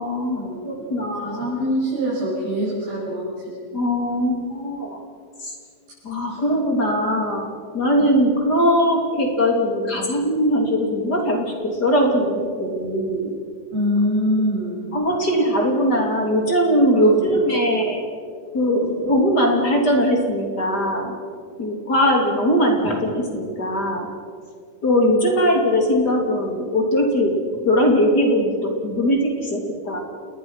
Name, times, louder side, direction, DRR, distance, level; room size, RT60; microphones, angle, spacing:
voice 1, 0.0-1.5 3.7-5.0 5.4-5.5 6.0-7.4 7.7-13.3 14.9-18.0 18.5-21.1 21.6-24.1 24.8-27.4 27.6-30.0, equal, 30° left, 2 dB, 3.1 m, -20 dB
voice 2, 1.1-3.2 6.3-6.4 13.7-14.9 16.9-17.4, equal, 90° right, -9 dB, 8.7 m, -24 dB
29.0 x 20.5 x 5.8 m, 2.1 s
omnidirectional pair, 4.3 m